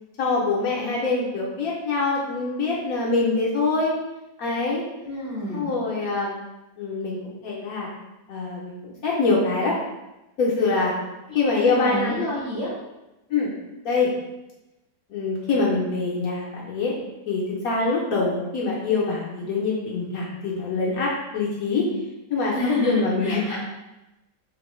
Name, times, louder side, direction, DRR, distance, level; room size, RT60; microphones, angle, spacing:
voice 1, 0.2-3.9 4.4-4.8 5.5-6.3 6.8-7.9 8.3-9.8 10.4-10.9 11.3-12.2 13.3-13.5 13.8-14.1 15.1-17.0 17.3-21.9 22.3-22.5 22.8-23.6, left 3 dB, 65° left, -4 dB, 1.0 m, -24 dB
voice 2, 5.0-5.6 11.3-12.7 22.5-23.6, left 1 dB, 30° right, -9 dB, 0.8 m, -28 dB
3.7 x 2.5 x 3.0 m, 0.98 s
omnidirectional pair, 1.8 m